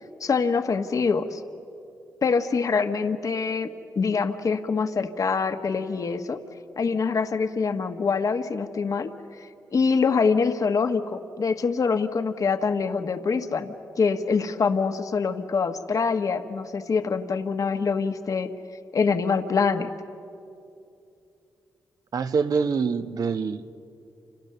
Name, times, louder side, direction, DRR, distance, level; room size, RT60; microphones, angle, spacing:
voice 1, 0.2-1.4 2.2-3.7 3.9-6.4 6.8-9.1 9.4-18.5 18.9-19.9, left 5 dB, 55° left, 7 dB, 1.4 m, -25 dB
voice 2, 22.1-23.8, right 5 dB, 65° right, 8 dB, 1.1 m, -25 dB
29.5 x 27.5 x 6.8 m, 2.7 s
cardioid pair, 65°, 7 cm